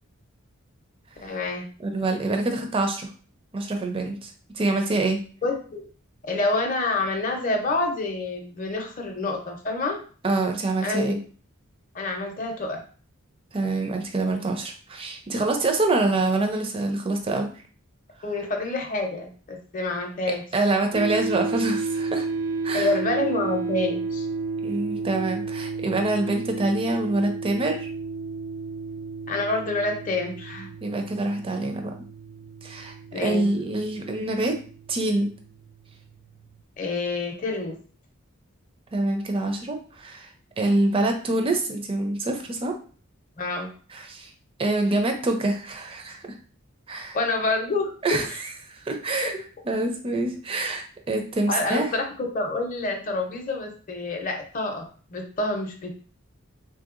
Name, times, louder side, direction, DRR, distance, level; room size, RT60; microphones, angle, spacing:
voice 1, 1.2-1.7 5.4-5.8 6.2-10.0 10.8-11.2 11.9-12.8 18.2-20.4 22.7-24.3 29.3-30.7 33.1-33.5 36.8-37.8 43.4-43.7 47.1-48.4 51.5-54.9 55.1-55.9, left 2 dB, 40° left, 2 dB, 0.6 m, -27 dB
voice 2, 1.8-3.1 3.5-5.2 10.2-11.2 13.5-17.5 20.5-22.3 22.6-22.9 24.6-27.9 30.8-31.9 32.6-34.6 34.9-35.3 38.9-40.3 40.6-42.7 43.9-44.3 44.6-46.2 46.9-47.2 48.0-48.3 48.7-49.4 49.7-51.9, right 2 dB, 25° right, 4 dB, 0.4 m, -25 dB
sound 1, 20.9-36.2, right 4 dB, 90° right, 0.4 m, -32 dB
3.3 x 2.7 x 2.4 m, 0.41 s
head